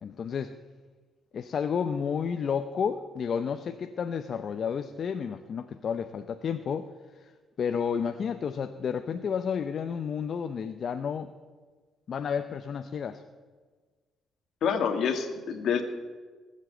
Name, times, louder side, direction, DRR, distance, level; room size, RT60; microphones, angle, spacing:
voice 1, 0.0-0.5 1.3-6.9 7.6-11.3 12.1-13.2, left 7 dB, 55° left, 8 dB, 0.7 m, -31 dB
voice 2, 14.6-15.8, left 7 dB, 70° left, 7 dB, 1.7 m, -27 dB
18.5 x 7.6 x 7.8 m, 1.4 s
cardioid pair, 90°, 0 cm